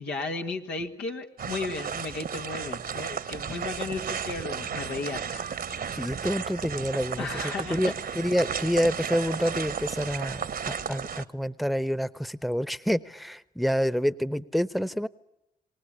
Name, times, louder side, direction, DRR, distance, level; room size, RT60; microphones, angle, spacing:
voice 1, 0.0-5.4 7.2-7.8 8.1-8.2, left 3 dB, 90° left, 2 dB, 1.8 m, -34 dB
sound 1, 1.4-11.2, right 7 dB, 60° right, 1.1 m, -34 dB
voice 2, 6.0-7.3 7.7-15.1, equal, ahead, 17 dB, 0.9 m, -28 dB
26.5 x 19.0 x 10.0 m, 0.87 s
supercardioid pair, 45°, 17 cm